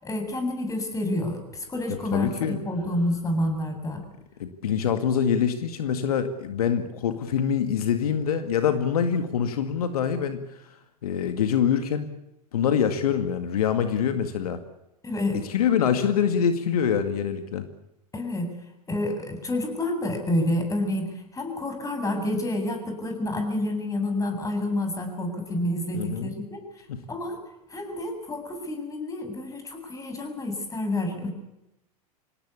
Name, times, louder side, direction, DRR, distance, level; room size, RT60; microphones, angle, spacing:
voice 1, 0.0-4.1 15.0-15.4 18.1-18.5 18.9-26.6 27.1-27.4 27.7-31.3, left 1 dB, 15° left, 5 dB, 7.8 m, -29 dB
voice 2, 1.9-2.6 4.4-10.4 11.0-12.1 12.5-14.6 15.4-17.7 25.9-26.3 26.9-27.0, left 8 dB, 75° left, 8 dB, 2.0 m, -25 dB
27.0 x 18.5 x 8.5 m, 0.90 s
hypercardioid pair, 95°, 19 cm